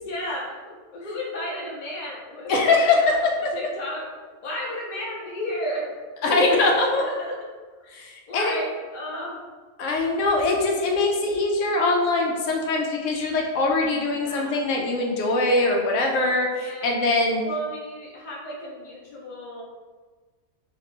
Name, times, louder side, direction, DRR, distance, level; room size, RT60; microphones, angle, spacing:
voice 1, 0.0-3.2 3.5-4.1 4.4-5.9 6.3-7.4 8.3-9.4 14.2-14.6 16.6-17.0 17.4-19.6, left 1 dB, 45° left, -3 dB, 0.8 m, -33 dB
voice 2, 2.5-3.1 6.2-7.0 7.9-8.5 9.8-17.4, left 2 dB, 90° left, 0 dB, 1.0 m, -22 dB
3.2 x 2.9 x 3.3 m, 1.4 s
omnidirectional pair, 1.2 m